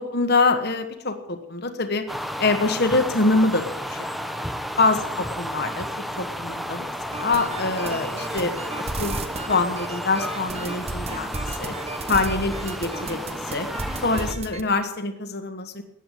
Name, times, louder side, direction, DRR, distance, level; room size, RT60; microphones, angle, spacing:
voice 1, 0.0-2.1 2.4-4.0 4.3-4.4 4.8-6.9 7.2-9.2 9.5-11.7 12.1-13.7 14.0-15.8, left 3 dB, 50° left, 6 dB, 1.3 m, -25 dB
sound 1, 2.1-14.3, equal, ahead, 0.7 m, -32 dB
sound 2, 7.1-14.6, right 3 dB, 30° right, 0.9 m, -34 dB
14.5 x 10.0 x 8.9 m, 0.81 s
head